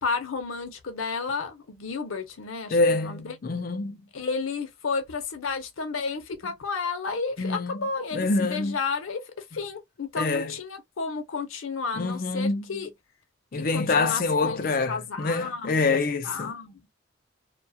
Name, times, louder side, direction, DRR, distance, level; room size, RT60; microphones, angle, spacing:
voice 1, 0.0-3.4 4.1-12.9 13.5-16.8, left 4 dB, 85° left, 0.6 m, -32 dB
voice 2, 2.7-4.0 7.4-7.8 8.1-8.8 10.2-10.6 11.9-12.6 13.5-16.5, left 3 dB, 45° left, 0.4 m, -26 dB
2.3 x 2.3 x 2.6 m
head